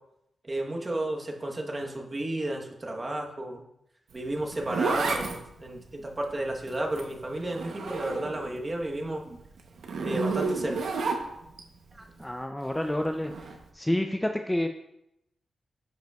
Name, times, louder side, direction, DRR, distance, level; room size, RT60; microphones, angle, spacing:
voice 1, 0.4-3.6 4.1-9.4 10.0-10.8 11.9-12.0, right 1 dB, 25° right, 1 dB, 1.0 m, -32 dB
Zipper (clothing), 4.1-8.6 8.9-11.6 13.2-13.5, right 4 dB, 80° right, 0.8 m, -32 dB
voice 2, 12.2-13.3 13.7-14.7, left 1 dB, 10° left, 4 dB, 0.4 m, -28 dB
10.5 x 5.1 x 2.3 m, 0.81 s
wide cardioid pair, 110°, 0 cm